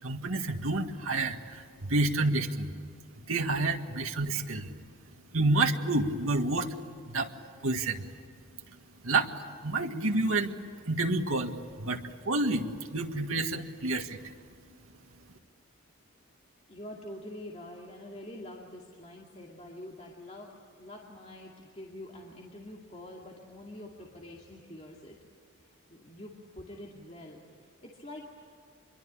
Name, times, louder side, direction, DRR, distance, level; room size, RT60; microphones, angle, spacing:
voice 1, 0.0-2.7 3.3-4.7 5.3-6.7 7.1-7.3 7.6-8.1 9.0-10.6 10.9-14.2, right 2 dB, 85° right, 3 dB, 1.8 m, -29 dB
voice 2, 16.7-25.2 25.6-28.3, left 1 dB, 30° left, -1 dB, 2.5 m, -46 dB
26.0 x 23.0 x 8.7 m, 2.2 s
head